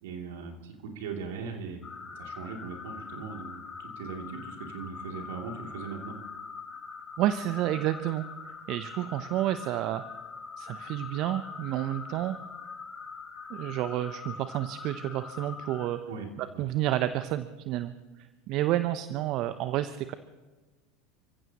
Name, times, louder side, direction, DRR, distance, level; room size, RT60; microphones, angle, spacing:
voice 1, 0.0-6.1 16.1-16.3 16.5-16.6, right 5 dB, 70° right, 2 dB, 2.8 m, -40 dB
sound 1, 1.8-15.9, left 5 dB, 30° left, 4.5 m, -43 dB
voice 2, 7.2-8.2 8.7-10.0 10.6-12.4 13.5-16.0 16.4-17.9 18.5-20.1, right 13 dB, 50° right, 11 dB, 0.7 m, -30 dB
29.5 x 15.5 x 3.0 m, 1.3 s
hypercardioid pair, 85°, 0 cm